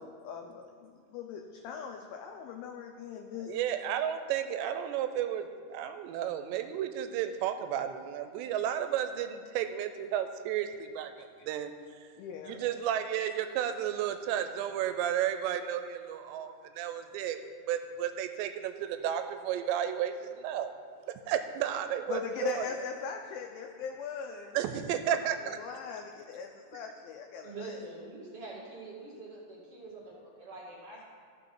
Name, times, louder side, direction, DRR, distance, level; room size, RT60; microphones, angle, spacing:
voice 1, 0.0-3.5 12.2-12.6 22.1-24.6 25.2-27.8, left 6 dB, 90° left, 3 dB, 2.1 m, -40 dB
voice 2, 3.4-11.7 12.5-17.4 17.7-20.7 21.1-22.6 24.5-25.6, right 10 dB, 85° right, 9 dB, 2.8 m, -33 dB
voice 3, 27.4-31.0, right 3 dB, 50° right, -6 dB, 2.0 m, -45 dB
15.0 x 6.0 x 3.8 m, 2.2 s
omnidirectional pair, 5.0 m